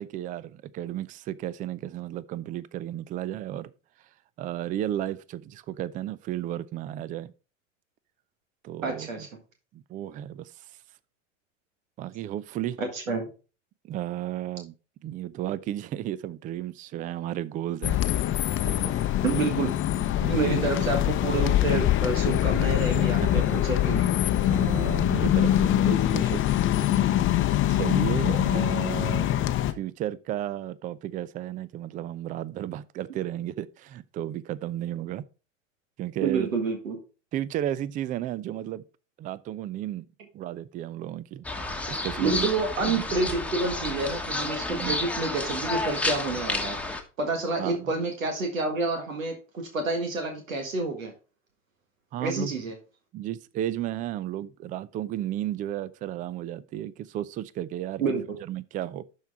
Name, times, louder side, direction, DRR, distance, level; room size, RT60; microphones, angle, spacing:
voice 1, 0.0-3.7 4.4-7.3 8.6-9.3 9.7-10.7 12.0-12.8 13.8-14.7 15.0-18.0 18.6-19.0 20.2-21.1 23.2-23.6 24.5-26.5 26.8-27.1 27.7-29.3 29.7-35.2 36.0-36.5 37.3-38.8 39.2-40.1 40.3-41.4 41.9-42.5 42.9-43.2 44.7-45.0 47.6-47.9 52.1-52.5 53.1-58.0 58.4-59.0, right 12 dB, 20° right, 0.3 m, -33 dB
voice 2, 8.8-9.3 12.8-13.3 19.2-19.7 20.3-24.1 36.2-37.0 42.2-46.8 47.2-51.1 52.2-52.8 58.0-58.4, right 3 dB, 85° right, 1.7 m, -29 dB
sound 1, 17.8-29.7, left 12 dB, 30° left, 0.7 m, -24 dB
sound 2, 41.4-47.0, left 2 dB, 5° left, 1.2 m, -31 dB
12.0 x 4.6 x 3.5 m
hypercardioid pair, 90°, 39 cm